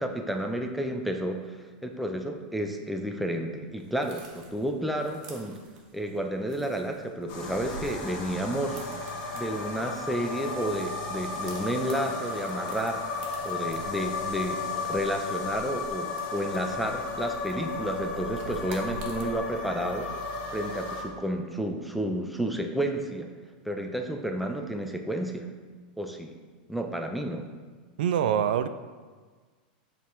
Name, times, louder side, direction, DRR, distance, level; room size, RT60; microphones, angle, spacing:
voice 1, 0.0-5.6 5.9-8.8 9.3-13.0 13.4-20.1 20.5-23.3 23.6-25.5 26.0-26.3 26.7-27.5, right 1 dB, ahead, 3 dB, 0.4 m, -31 dB
sound 1, 3.8-19.4, right 3 dB, 55° right, 1.4 m, -48 dB
sound 2, 7.3-21.0, left 3 dB, 45° left, 1.2 m, -34 dB
voice 2, 28.0-28.7, right 9 dB, 75° right, 11 dB, 0.4 m, -24 dB
7.0 x 3.7 x 4.6 m, 1.4 s
supercardioid pair, 155°, 5 cm